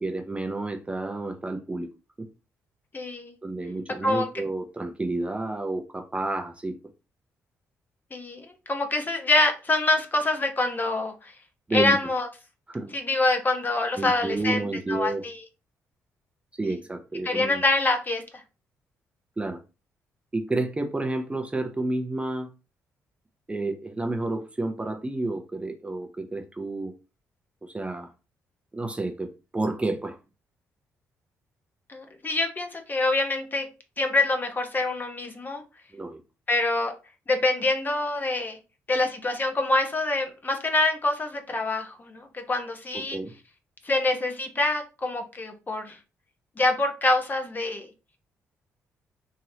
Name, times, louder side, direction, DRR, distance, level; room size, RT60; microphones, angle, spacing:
voice 1, 0.0-1.9 3.4-6.7 11.7-12.0 12.7-12.9 13.9-15.2 16.6-17.6 19.4-19.6 20.3-22.5 23.5-26.9 27.6-28.1 28.7-30.2 35.9-36.2 42.9-43.3, right 2 dB, 20° right, 0.6 m, -30 dB
voice 2, 2.9-3.3 4.0-4.3 8.1-11.1 11.7-12.3 12.9-14.6 14.9-15.3 17.2-18.2 31.9-33.7 34.0-35.6 36.5-36.9 37.3-38.6 38.9-43.2 43.8-46.0 46.6-47.9, left 2 dB, 30° left, 0.8 m, -25 dB
3.0 x 2.8 x 2.7 m
supercardioid pair, 55°, 6 cm